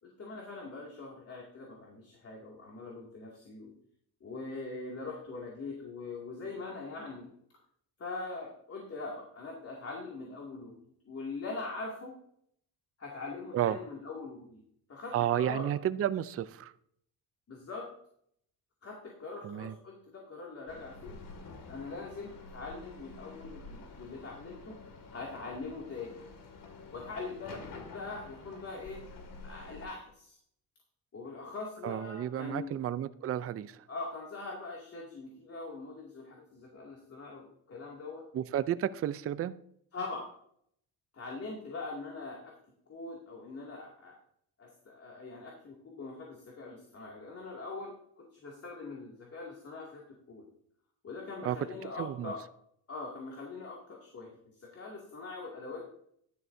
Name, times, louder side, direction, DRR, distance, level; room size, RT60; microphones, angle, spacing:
voice 1, 0.0-3.7 4.2-7.3 8.0-10.8 11.1-12.2 13.0-14.6 14.9-15.7 17.5-17.9 18.8-21.2 21.7-24.8 25.1-26.1 26.9-29.0 29.4-30.4 31.1-32.8 33.9-38.2 39.9-40.3 41.1-42.5 42.9-44.2 44.6-50.0 50.3-50.5 51.0-52.4 52.9-55.9, left 3 dB, 40° left, -3 dB, 2.4 m, -42 dB
voice 2, 15.1-16.7 19.4-19.7 31.8-33.7 38.3-39.6 51.4-51.6 52.0-52.3, right 11 dB, 40° right, 14 dB, 0.5 m, -32 dB
sound 1, 20.7-29.9, left 3 dB, 60° left, 2.3 m, -49 dB
11.5 x 10.5 x 2.7 m, 0.69 s
cardioid pair, 105°, 37 cm